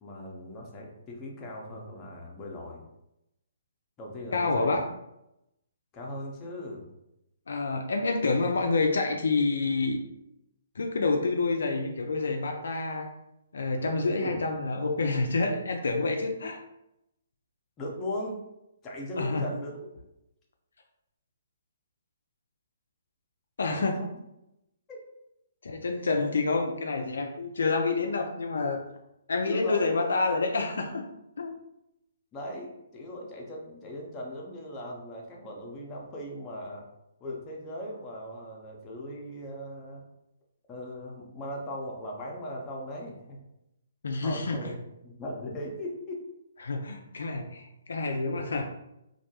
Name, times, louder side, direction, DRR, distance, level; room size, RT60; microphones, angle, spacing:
voice 1, 0.0-2.8 4.0-4.8 5.9-6.9 14.1-14.4 17.8-18.4 18.8-19.8 23.6-24.2 24.9-25.0 29.5-29.8 32.3-36.9 37.2-40.0 40.7-43.4 44.2-44.8 45.0-46.3, left 1 dB, 25° left, -2 dB, 0.6 m, -38 dB
voice 2, 4.3-4.8 7.5-10.0 10.8-13.1 13.5-16.6 19.1-19.5 23.6-24.0 25.6-28.9 29.3-31.0 31.4-31.6 44.0-44.6 46.6-48.6, left 3 dB, 75° left, 3 dB, 0.3 m, -28 dB
2.2 x 2.1 x 2.8 m, 0.86 s
hypercardioid pair, 140°, 0 cm